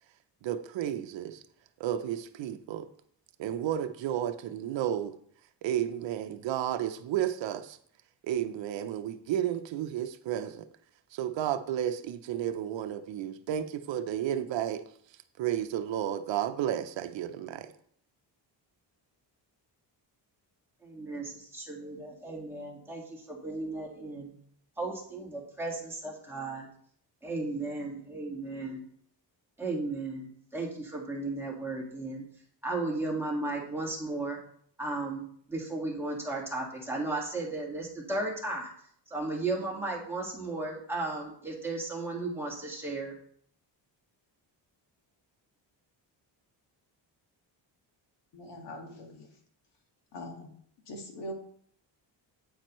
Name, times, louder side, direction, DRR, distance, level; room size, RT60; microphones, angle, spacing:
voice 1, 0.4-1.4 1.8-2.9 3.4-5.2 5.6-7.8 8.2-10.7 11.1-14.8 15.4-17.7, right 10 dB, 80° right, 0.7 m, -32 dB
voice 2, 20.8-24.3 24.8-26.7 27.2-28.8 29.6-32.2 32.6-34.4 34.8-38.7 39.1-43.1, right 2 dB, 5° right, 1.9 m, -35 dB
voice 3, 48.3-49.3 50.1-50.6 50.9-51.3, equal, 65° left, 1.9 m, -42 dB
8.8 x 8.8 x 3.1 m
cardioid pair, 160°, 44 cm